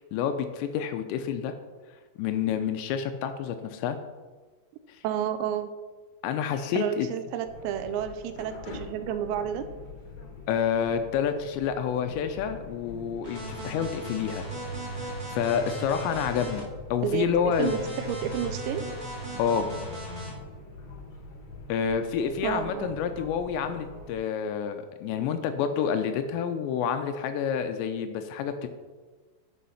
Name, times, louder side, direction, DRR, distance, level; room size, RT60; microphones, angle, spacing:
voice 1, 0.0-1.5 2.2-4.0 6.2-7.1 10.5-14.5 14.9-16.7 16.9-17.7 19.4-19.7 21.7-28.7, left 7 dB, 80° left, 8 dB, 2.7 m, -28 dB
voice 2, 5.0-5.7 6.7-9.7 17.0-17.3 17.6-18.9 22.4-22.9, right 9 dB, 80° right, 9 dB, 2.8 m, -31 dB
sound 1, 7.4-24.2, left 3 dB, 60° left, 1.8 m, -45 dB
sound 2, 13.2-16.6 17.5-20.3, right 1 dB, 10° right, 1.2 m, -37 dB
10.0 x 5.1 x 5.6 m, 1.3 s
omnidirectional pair, 5.3 m